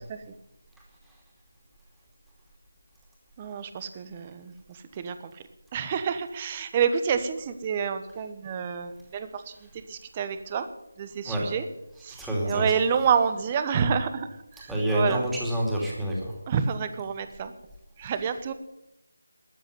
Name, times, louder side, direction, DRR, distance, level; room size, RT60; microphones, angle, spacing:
voice 1, 3.4-5.4 5.7-10.7 11.0-11.6 12.0-14.3 14.5-15.3 16.5-17.5 18.0-18.5, right 7 dB, 20° right, 10 dB, 1.0 m, -28 dB
voice 2, 12.1-12.8 14.7-16.4 18.1-18.3, right 1 dB, 5° right, -4 dB, 2.7 m, -28 dB
13.5 x 9.0 x 9.4 m, 0.86 s
figure-of-eight pair, 165°, 0 cm